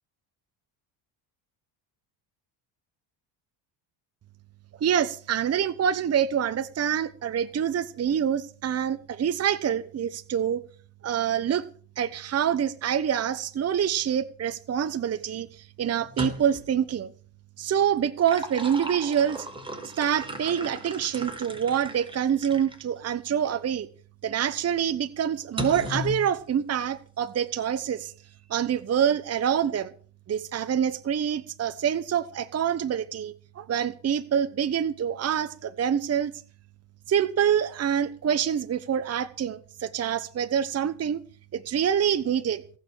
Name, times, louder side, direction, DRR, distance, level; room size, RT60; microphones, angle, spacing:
voice 1, 4.8-10.6 11.0-11.6 12.0-15.5 15.8-17.1 17.6-19.4 20.0-23.9 24.2-28.1 28.5-29.9 30.3-36.3 37.1-41.2 41.5-42.6, right 9 dB, 35° right, 10 dB, 1.0 m, -26 dB
sound 1, 16.0-16.7 18.0-22.8 23.4-23.6 25.6-26.2, left 1 dB, 10° right, 4.4 m, -36 dB
18.5 x 6.6 x 8.9 m, 0.43 s
cardioid pair, 105°, 44 cm